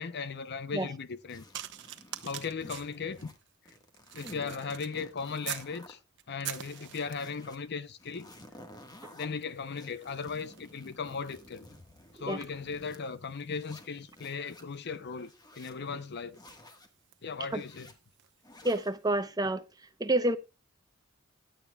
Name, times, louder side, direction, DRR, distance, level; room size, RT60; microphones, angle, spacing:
voice 1, 0.0-1.4 2.2-3.3 4.1-6.0 6.3-8.3 9.1-11.7 12.1-15.3 15.6-16.4 17.2-17.9, left 5 dB, 55° left, 0.6 m, -37 dB
sound 1, 1.3-3.4 3.7-5.9 6.4-7.6 8.0-9.3 9.8-13.0 13.5-14.6 15.1-15.8 16.3-16.9 17.5-17.9 18.4-19.0, left 1 dB, 20° left, 1.4 m, -52 dB
sound 2, 1.5-5.8 6.2-7.4 8.2-8.4 8.7-18.4 19.1-19.3, right 12 dB, 60° right, 0.9 m, -47 dB
voice 2, 18.6-19.6 20.0-20.4, right 2 dB, 20° right, 0.7 m, -28 dB
16.0 x 10.5 x 2.3 m
head